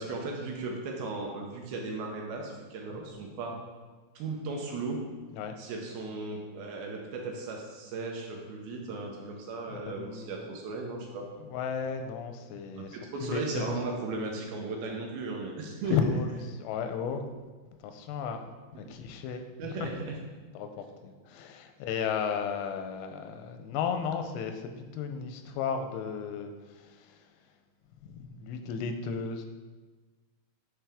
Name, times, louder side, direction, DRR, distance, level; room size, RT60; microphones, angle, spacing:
voice 1, 0.0-3.6 4.2-5.0 5.6-11.3 12.7-16.0 19.6-20.2, right 3 dB, 75° right, 0 dB, 2.4 m, -36 dB
voice 2, 9.7-10.4 11.4-13.8 15.9-17.2 17.8-18.4 18.8-19.5 19.8-19.9 20.5-27.3 28.0-29.5, left 6 dB, 90° left, 7 dB, 2.7 m, -34 dB
9.2 x 4.2 x 3.5 m, 1.3 s
omnidirectional pair, 4.7 m